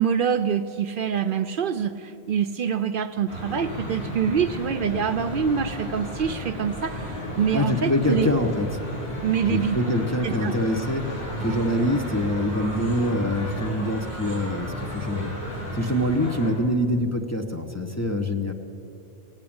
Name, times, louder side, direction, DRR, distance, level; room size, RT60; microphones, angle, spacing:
voice 1, 0.0-8.3 9.2-9.8 10.2-10.5, right 7 dB, 65° right, 9 dB, 0.7 m, -25 dB
sound 1, 3.3-16.5, equal, 90° left, 4.1 m, -33 dB
voice 2, 7.5-8.8 9.4-11.1 11.4-15.3 15.7-18.5, left 1 dB, 15° left, 2 dB, 0.7 m, -25 dB
18.0 x 8.8 x 8.7 m, 2.6 s
omnidirectional pair, 1.1 m